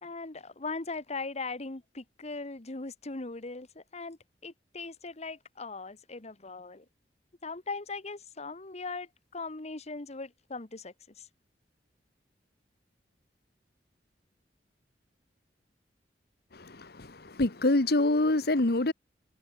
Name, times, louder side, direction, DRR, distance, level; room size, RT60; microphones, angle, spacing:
voice 1, 0.0-6.8 7.4-11.3, left 3 dB, 40° left, 1.4 m, -39 dB
voice 2, 16.6-18.9, left 2 dB, 60° left, 1.5 m, -26 dB
head